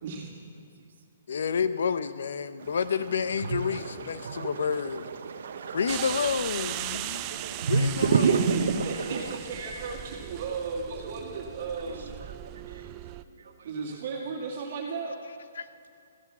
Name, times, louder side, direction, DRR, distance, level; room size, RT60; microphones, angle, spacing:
voice 1, 0.0-0.3 8.1-12.2 13.6-15.2, right 4 dB, 45° right, -1 dB, 2.1 m, -35 dB
voice 2, 1.3-5.1 5.7-7.2 7.6-8.8 15.6-15.7, left 6 dB, 75° left, 13 dB, 0.7 m, -30 dB
sound 1, 2.6-9.4, right 5 dB, 65° right, 1.0 m, -30 dB
voice 3, 4.2-5.0 5.4-5.5 8.1-8.4 8.7-8.8 9.1-10.1 11.0-11.1 11.8-14.0 15.1-15.2, right 4 dB, 90° right, 4 dB, 1.6 m, -50 dB
sound 2, 5.9-13.2, right 14 dB, 25° right, 0.4 m, -38 dB
15.0 x 9.2 x 7.2 m, 2.5 s
hypercardioid pair, 165°, 0 cm